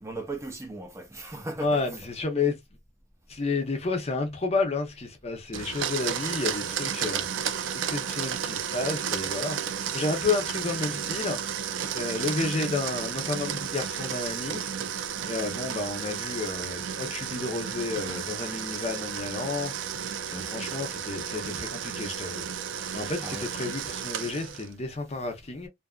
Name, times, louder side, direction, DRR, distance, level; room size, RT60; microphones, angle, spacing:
voice 1, 0.0-2.0 23.2-23.5, right 2 dB, 15° right, 0.5 m, -37 dB
voice 2, 1.6-2.6 3.3-11.4 11.9-14.6 15.3-19.8 20.3-22.5 22.9-25.7, left 3 dB, 35° left, 0.6 m, -31 dB
Domestic sounds home sounds, 5.5-24.7, right 8 dB, 85° right, 0.4 m, -33 dB
2.6 x 2.4 x 2.3 m
head